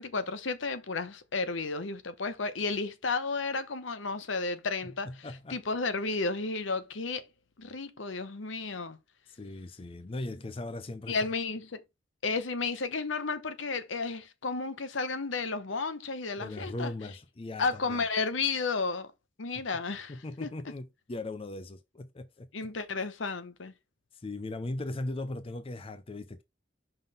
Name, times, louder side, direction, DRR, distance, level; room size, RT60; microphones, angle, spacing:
voice 1, 0.0-7.2 7.6-9.0 11.1-11.8 12.2-16.9 17.6-19.1 19.4-20.1 20.4-20.5 22.5-23.7, left 4 dB, 75° left, 0.9 m, -32 dB
voice 2, 5.1-5.6 9.3-11.3 16.4-18.0 20.1-22.7 24.1-26.4, left 2 dB, 30° left, 0.5 m, -39 dB
5.6 x 3.8 x 5.3 m
head